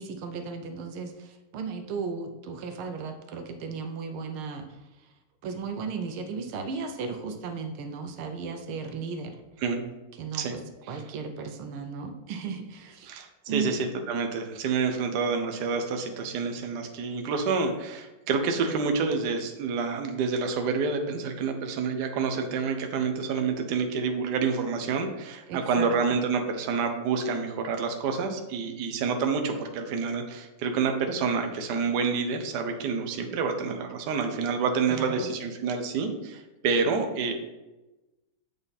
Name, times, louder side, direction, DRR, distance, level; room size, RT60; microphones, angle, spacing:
voice 1, 0.0-5.1 5.4-9.4 10.1-10.6 10.9-13.1 13.5-13.8 25.5-25.9 34.9-35.3, right 5 dB, 85° right, 7 dB, 1.6 m, -35 dB
voice 2, 9.6-10.0 10.3-10.6 13.1-37.3, right 5 dB, 60° right, 5 dB, 1.3 m, -28 dB
7.9 x 5.4 x 4.1 m, 1.0 s
omnidirectional pair, 2.3 m